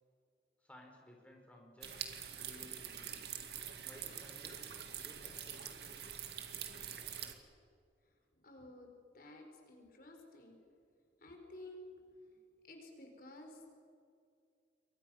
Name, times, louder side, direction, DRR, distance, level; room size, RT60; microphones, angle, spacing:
voice 1, 0.6-1.9 2.3-3.2 3.9-4.6 5.0-6.0 12.3-12.4, left 1 dB, 10° left, 0 dB, 4.0 m, -58 dB
sound 1, 1.8-7.3, right 9 dB, 65° right, 2.2 m, -45 dB
voice 2, 8.4-8.9 9.1-10.6 11.2-11.9 12.6-13.8, left 1 dB, 50° left, 3 dB, 4.2 m, -53 dB
28.5 x 23.0 x 6.3 m, 2.3 s
head